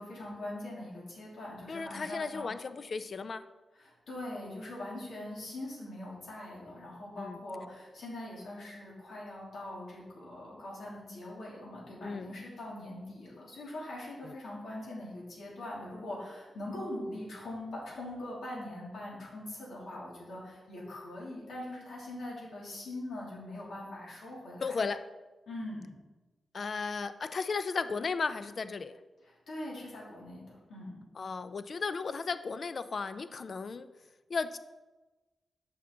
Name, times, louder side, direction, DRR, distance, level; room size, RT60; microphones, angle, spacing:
voice 1, 0.0-2.5 3.7-24.8 25.5-26.0 29.2-31.0, left 1 dB, 85° left, -5 dB, 2.8 m, -42 dB
voice 2, 1.7-3.4 7.2-7.4 12.0-12.3 14.2-14.3 24.6-25.0 26.5-28.9 31.2-33.9 34.3-34.6, left 4 dB, 50° left, 12 dB, 0.4 m, -35 dB
8.6 x 5.7 x 3.9 m, 1.2 s
wide cardioid pair, 110°, 0 cm